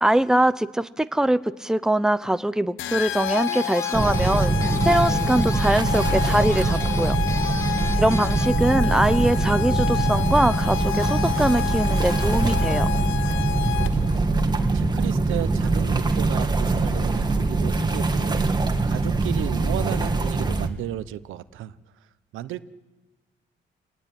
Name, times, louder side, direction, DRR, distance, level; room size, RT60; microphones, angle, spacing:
voice 1, 0.0-7.2 8.0-12.9, right 1 dB, 5° right, 13 dB, 0.9 m, -22 dB
sound 1, 2.8-14.2, left 17 dB, 80° left, 0.9 m, -30 dB
sound 2, 3.3-8.6, left 1 dB, 15° left, 2.4 m, -37 dB
sound 3, 3.9-20.7, right 3 dB, 20° right, 2.3 m, -23 dB
voice 2, 7.5-8.0 13.3-14.3 14.7-18.6 18.8-21.7 22.3-22.7, right 12 dB, 85° right, 14 dB, 1.0 m, -34 dB
28.5 x 19.0 x 9.2 m, 1.2 s
cardioid pair, 90°, 20 cm